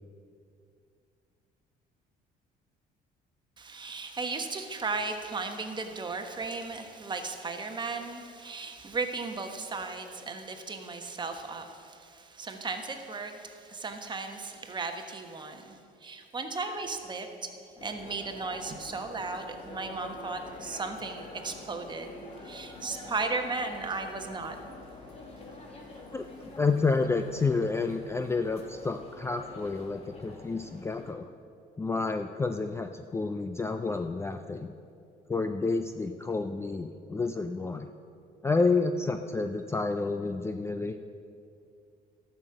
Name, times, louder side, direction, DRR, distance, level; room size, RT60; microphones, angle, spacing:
voice 1, 3.6-17.5 17.8-22.1 22.4-24.6, right 3 dB, 25° right, 5 dB, 1.2 m, -36 dB
sound 1, 17.8-31.1, left 2 dB, 35° left, 1.9 m, -46 dB
voice 2, 26.1-31.3 31.8-34.7 35.3-37.9 38.4-41.0, left 3 dB, 15° left, 7 dB, 0.4 m, -30 dB
13.0 x 6.3 x 7.6 m, 2.5 s
cardioid pair, 110°, 17 cm